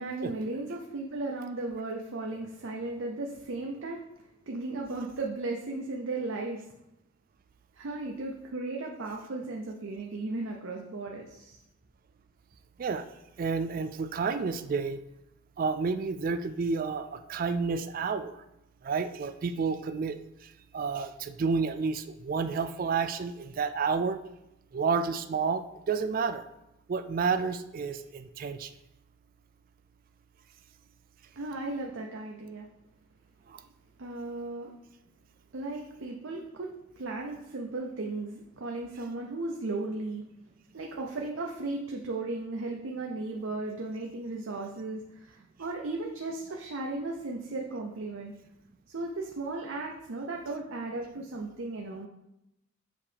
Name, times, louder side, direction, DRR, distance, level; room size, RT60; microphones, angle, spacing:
voice 1, 0.0-4.0 4.5-6.7 7.7-11.6 31.4-32.7 34.0-34.7 35.5-40.2 40.7-48.3 48.9-52.1, right 2 dB, 75° right, 0 dB, 0.6 m, -36 dB
voice 2, 13.4-15.0 15.6-18.3 18.8-20.2 20.7-24.2 24.7-26.4 26.9-28.7, right 5 dB, 45° right, 10 dB, 0.3 m, -30 dB
7.0 x 2.9 x 5.0 m, 0.87 s
head